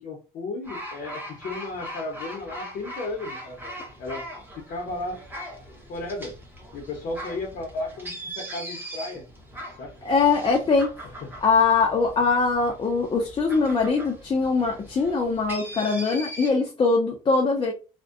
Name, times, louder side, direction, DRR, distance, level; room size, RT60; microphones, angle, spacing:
voice 1, 0.0-5.2 5.9-6.4 6.7-9.3 9.8-9.9 11.0-11.3, left 2 dB, 65° left, 0.7 m, -34 dB
sound 1, 0.6-16.5, equal, 10° right, 0.8 m, -40 dB
voice 2, 10.0-10.9 11.4-17.7, left 4 dB, 30° left, 0.5 m, -22 dB
2.5 x 2.1 x 2.4 m
cardioid pair, 110°, 17 cm